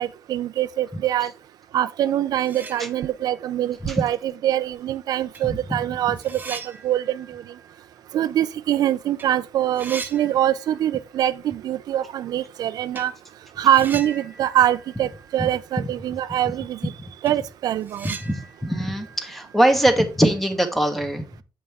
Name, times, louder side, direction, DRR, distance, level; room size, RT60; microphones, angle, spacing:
voice 1, 0.0-1.3 1.7-7.4 8.1-13.1 13.6-16.9 17.2-18.2, right 11 dB, 80° right, 0.4 m, -24 dB
sound 1, 2.4-3.4 3.8-3.9 4.8-4.9 5.3-8.8 9.0-9.3 9.5-11.1 11.4-11.5 12.9-13.2 13.7-15.8 16.1-16.2 16.6-16.7 17.0-20.3, right 4 dB, 30° right, 0.9 m, -40 dB
voice 2, 18.0-21.4, right 1 dB, ahead, 1.3 m, -22 dB
7.7 x 5.2 x 3.5 m
cardioid pair, 125°, 7 cm